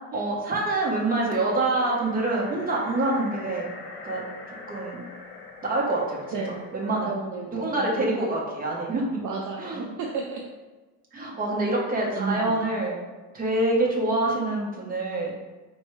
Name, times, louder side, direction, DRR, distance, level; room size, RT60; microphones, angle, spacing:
voice 1, 0.1-3.7 4.0-4.2 4.7-5.0 5.6-6.4 6.7-7.1 7.6-9.2 9.6-9.9 11.1-13.0 13.3-15.3, right 2 dB, 20° right, -3 dB, 0.9 m, -26 dB
sound 1, 0.7-7.1, left 4 dB, 75° left, 0.9 m, -44 dB
voice 2, 6.3-8.0 9.2-10.4 12.2-12.5, right 4 dB, 50° right, -1 dB, 0.6 m, -33 dB
4.4 x 3.1 x 3.1 m, 1.2 s
cardioid pair, 145°, 40 cm